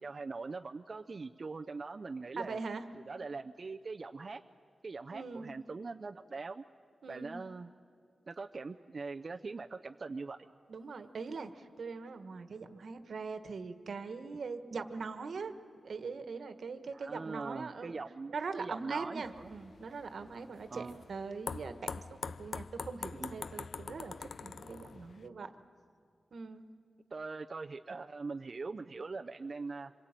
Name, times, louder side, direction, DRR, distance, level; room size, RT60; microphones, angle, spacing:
voice 1, 0.0-2.6 2.9-4.4 4.8-6.6 7.1-7.7 8.3-10.5 16.9-19.5 20.7-21.0 23.2-23.4 27.1-29.9, right 4 dB, 45° right, 5 dB, 0.5 m, -42 dB
voice 2, 2.4-2.9 5.1-5.6 7.0-7.4 10.7-15.5 15.8-17.9 18.3-25.5 26.3-26.7, right 4 dB, 75° right, 9 dB, 1.4 m, -42 dB
sound 1, 19.2-25.3, left 5 dB, 65° left, 0.5 m, -44 dB
26.0 x 22.5 x 9.0 m, 2.4 s
wide cardioid pair, 125°, 0 cm